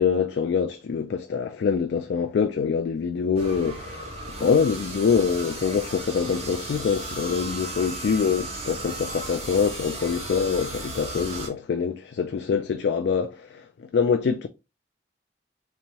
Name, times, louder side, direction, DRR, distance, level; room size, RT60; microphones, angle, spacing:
voice 1, 0.0-4.1 4.4-13.6 13.9-14.5, left 6 dB, 70° left, 0.3 m, -25 dB
sound 1, 3.3-11.5, right 2 dB, 35° right, 1.2 m, -35 dB
3.4 x 3.0 x 2.8 m
head